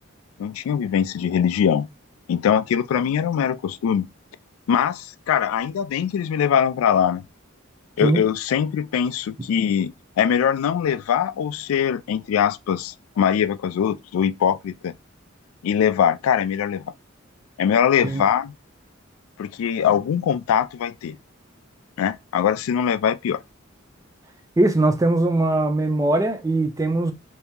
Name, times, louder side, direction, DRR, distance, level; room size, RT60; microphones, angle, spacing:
voice 1, 0.4-1.9 2.3-4.1 4.7-7.2 8.0-14.9 15.6-16.8 17.6-18.5 19.4-21.2 22.0-23.4, left 8 dB, 90° left, 0.3 m, -22 dB
voice 2, 24.6-27.1, right 2 dB, 15° right, 0.4 m, -20 dB
2.9 x 2.7 x 3.4 m
head